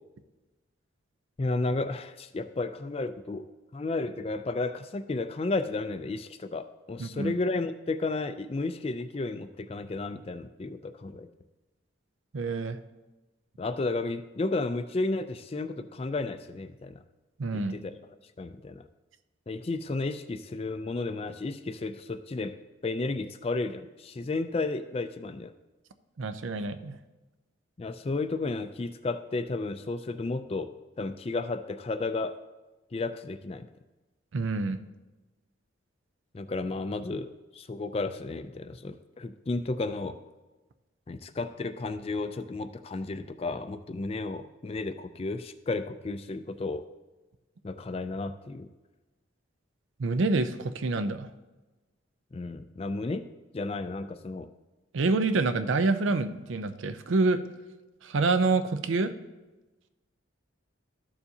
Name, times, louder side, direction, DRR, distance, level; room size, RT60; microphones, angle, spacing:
voice 1, 1.4-3.5 3.7-11.3 13.6-17.0 17.5-17.9 18.4-18.8 19.5-22.6 22.8-25.5 27.8-30.7 31.0-32.4 32.9-33.7 36.3-40.2 41.1-46.9 47.6-48.7 52.3-53.3 53.5-54.5, left 3 dB, 30° left, 11 dB, 0.3 m, -33 dB
voice 2, 7.0-7.3 12.3-12.8 17.4-17.8 26.2-27.0 34.3-34.8 50.0-51.3 54.9-57.4 58.0-59.1, right 3 dB, 70° right, 10 dB, 0.5 m, -27 dB
13.0 x 7.0 x 2.8 m, 1.1 s
head